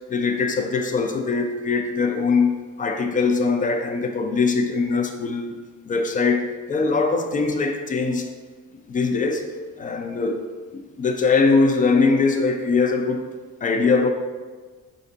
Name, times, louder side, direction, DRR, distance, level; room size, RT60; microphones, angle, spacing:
voice 1, 0.1-5.6 5.9-8.3 8.9-9.5 9.8-10.5 10.7-13.3 13.6-14.1, left 4 dB, 25° left, 0.4 m, -22 dB
4.2 x 2.6 x 3.9 m
cardioid pair, 120°, 33 cm